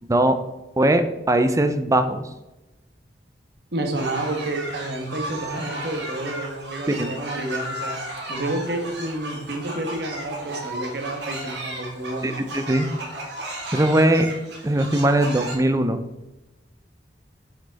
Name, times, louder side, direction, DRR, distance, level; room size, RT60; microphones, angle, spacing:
voice 1, 0.8-2.2 6.9-7.1 12.2-12.9 13.7-14.3 14.6-16.0, right 1 dB, 20° right, 9 dB, 0.5 m, -20 dB
voice 2, 3.7-8.0 8.3-12.3, right 1 dB, 65° right, 4 dB, 1.3 m, -29 dB
sound 1, 3.9-15.5, right 1 dB, 85° right, 2.0 m, -34 dB
6.4 x 5.8 x 4.0 m, 0.99 s
head